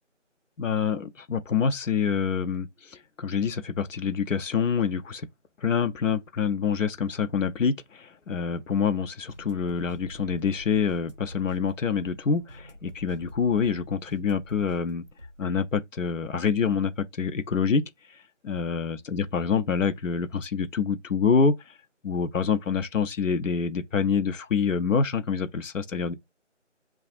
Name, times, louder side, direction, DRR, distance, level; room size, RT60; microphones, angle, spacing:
voice 1, 0.6-5.3 5.6-15.0 15.4-17.8 18.1-18.2 18.4-21.7 22.0-26.1, left 6 dB, 90° left, 0.6 m, -26 dB
sound 1, 9.3-15.6, left 1 dB, 35° right, 0.6 m, -46 dB
5.9 x 2.3 x 2.4 m
figure-of-eight pair, 175°, 37 cm